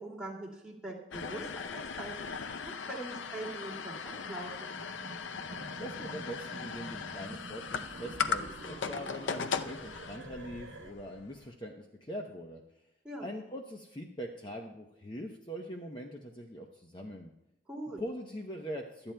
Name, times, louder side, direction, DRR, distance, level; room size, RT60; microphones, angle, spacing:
voice 1, 0.0-4.7 13.0-13.3 17.7-18.0, right 2 dB, 5° right, -4 dB, 2.4 m, -43 dB
sound 1, 1.1-11.5, left 6 dB, 85° left, 0.6 m, -38 dB
sound 2, 4.1-10.9, right 2 dB, 70° right, 1.1 m, -47 dB
voice 2, 5.7-12.6 13.2-17.3 18.0-19.1, equal, 25° left, 2 dB, 0.7 m, -42 dB
24.0 x 8.9 x 2.2 m, 0.88 s
head